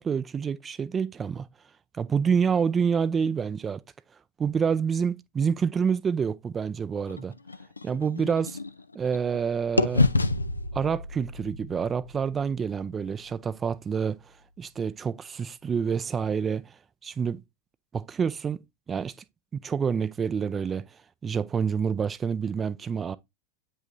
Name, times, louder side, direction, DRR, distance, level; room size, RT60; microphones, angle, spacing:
voice 1, 0.0-1.5 2.0-3.8 4.4-7.4 7.8-8.6 8.9-10.1 10.7-14.2 14.6-17.4 17.9-18.6 18.9-19.1 19.5-20.9 21.2-23.2, right 6 dB, 20° right, 0.4 m, -27 dB
sound 1, 7.1-9.4 9.8-13.7, left 2 dB, 80° left, 0.4 m, -29 dB
8.6 x 5.5 x 2.6 m
figure-of-eight pair, 90°, 0 cm